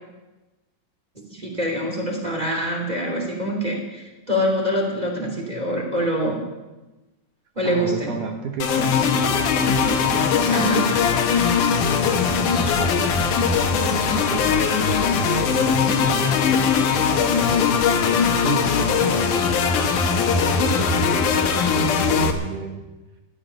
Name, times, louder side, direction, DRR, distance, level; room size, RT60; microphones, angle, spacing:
voice 1, 1.3-6.4 7.5-8.1 10.5-10.9, equal, 10° right, 0 dB, 2.2 m, -25 dB
voice 2, 7.6-10.8 11.8-14.7 15.1-19.6 20.6-22.8, right 4 dB, 65° right, 2 dB, 2.2 m, -33 dB
sound 1, 8.6-22.3, left 6 dB, 75° left, 1.8 m, -20 dB
14.0 x 8.9 x 9.9 m, 1.1 s
omnidirectional pair, 5.6 m